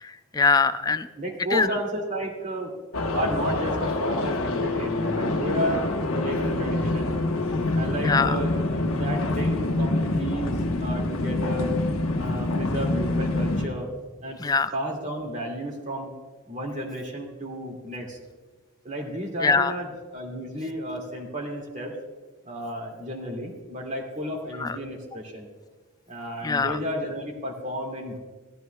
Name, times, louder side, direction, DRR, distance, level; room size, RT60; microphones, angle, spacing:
voice 1, 0.0-1.1 1.5-1.7 8.0-8.4 14.4-14.7 19.4-19.7 24.6-24.8 26.4-26.8, left 4 dB, 20° left, 12 dB, 0.3 m, -22 dB
voice 2, 0.9-2.7 3.1-7.2 7.7-8.5 8.8-10.5 10.8-11.8 12.2-13.9 14.2-14.4 14.7-16.1 16.5-18.2 18.8-21.9 22.5-25.5 26.1-28.2, equal, 40° right, 1 dB, 2.1 m, -32 dB
sound 1, 2.9-13.7, left 2 dB, 90° left, 1.1 m, -26 dB
17.0 x 14.0 x 2.3 m, 1.3 s
head